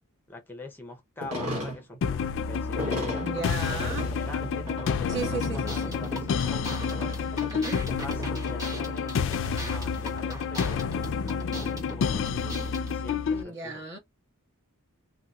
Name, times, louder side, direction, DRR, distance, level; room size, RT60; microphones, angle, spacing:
voice 1, 0.3-3.2 3.7-12.5 12.9-13.8, left 2 dB, 10° left, 0.6 m, -43 dB
sound 1, 1.2-9.6 9.9-10.0 10.4-10.5 10.9-12.6, equal, 90° right, 1.2 m, -38 dB
sound 2, 2.0-13.4, left 6 dB, 60° left, 0.3 m, -29 dB
voice 2, 3.1-4.1 5.1-6.0 7.5-7.8 13.3-14.0, right 3 dB, 55° right, 1.4 m, -35 dB
sound 3, 5.2-13.0, equal, 15° right, 1.1 m, -42 dB
3.1 x 2.8 x 2.3 m
head